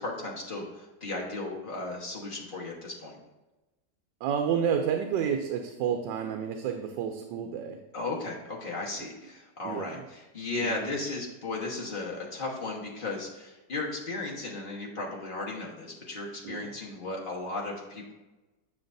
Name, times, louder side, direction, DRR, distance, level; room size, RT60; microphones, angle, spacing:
voice 1, 0.0-3.2 7.9-18.1, left 2 dB, 30° left, -3 dB, 1.3 m, -35 dB
voice 2, 4.2-7.8 9.6-10.0 10.6-10.9 16.4-16.7, right 8 dB, 90° right, 4 dB, 1.3 m, -30 dB
8.8 x 5.8 x 2.6 m, 1.1 s
omnidirectional pair, 1.9 m